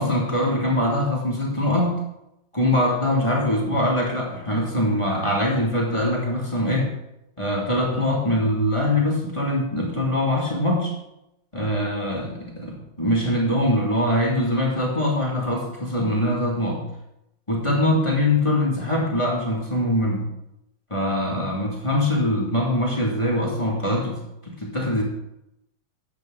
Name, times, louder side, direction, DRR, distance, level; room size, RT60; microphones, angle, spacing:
voice 1, 0.0-2.0 2.5-6.9 7.4-10.9 11.5-16.9 17.5-20.2 20.9-25.0, left 1 dB, 15° left, -3 dB, 2.3 m, -23 dB
13.5 x 8.4 x 3.9 m, 0.86 s
omnidirectional pair, 2.2 m